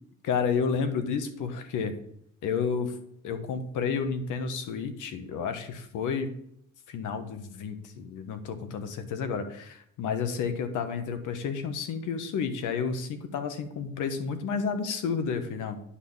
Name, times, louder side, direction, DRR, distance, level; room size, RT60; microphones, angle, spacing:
voice 1, 0.2-1.9 2.4-2.9 3.2-6.3 6.9-15.9, left 6 dB, 85° left, 9 dB, 1.3 m, -31 dB
9.8 x 4.3 x 7.2 m, 0.72 s
cardioid pair, 90°, 30 cm